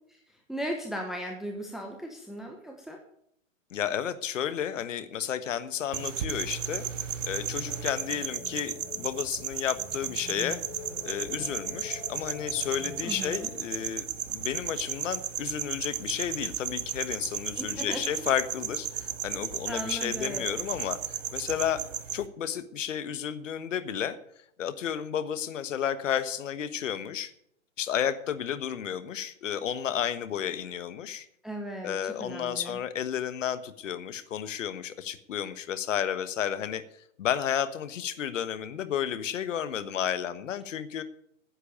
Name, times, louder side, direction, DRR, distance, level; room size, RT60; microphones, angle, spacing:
voice 1, 0.1-3.0 13.0-13.5 17.6-18.0 19.7-20.7 31.4-32.8, equal, ahead, 2 dB, 1.0 m, -37 dB
voice 2, 3.7-6.8 7.2-10.6 11.0-14.1 14.3-21.8 22.1-24.2 24.6-27.3 27.8-31.3 31.8-36.8 37.2-41.0, left 9 dB, 70° left, 13 dB, 1.4 m, -32 dB
sound 1, 5.9-22.3, right 9 dB, 65° right, 1.3 m, -35 dB
sound 2, 7.6-13.9, left 4 dB, 25° left, 4.4 m, -45 dB
10.5 x 8.2 x 9.2 m, 0.71 s
hypercardioid pair, 130°, 40 cm